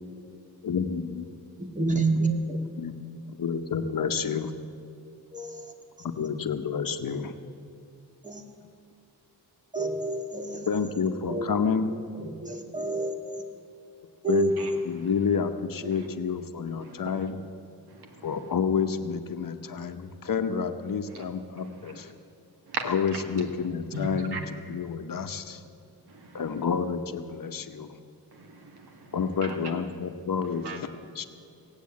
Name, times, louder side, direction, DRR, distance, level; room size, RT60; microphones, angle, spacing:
voice 1, 0.6-1.3 2.7-2.9 3.4-4.5 6.0-7.3 10.7-11.9 14.3-14.6 14.8-17.4 18.2-22.1 22.9-24.4 24.7-25.6 26.3-27.9 29.1-30.9 31.2-31.3, left 6 dB, 55° left, 8 dB, 0.9 m, -29 dB
voice 2, 1.6-2.6 5.3-5.7 8.2-8.4 9.7-10.7 11.3-11.5 12.2-13.4 14.2-14.8 16.0-16.1, right 3 dB, 20° right, 4 dB, 1.8 m, -29 dB
voice 3, 14.6-15.1 15.9-16.1 16.8-17.3 17.9-18.5 21.1-21.2 21.6-22.1 22.7-23.2 23.9-24.4 26.1-26.6 28.3-29.6 30.6-30.8, right 2 dB, 75° right, 3 dB, 1.9 m, -39 dB
18.0 x 8.3 x 8.5 m, 2.4 s
cardioid pair, 75°, 39 cm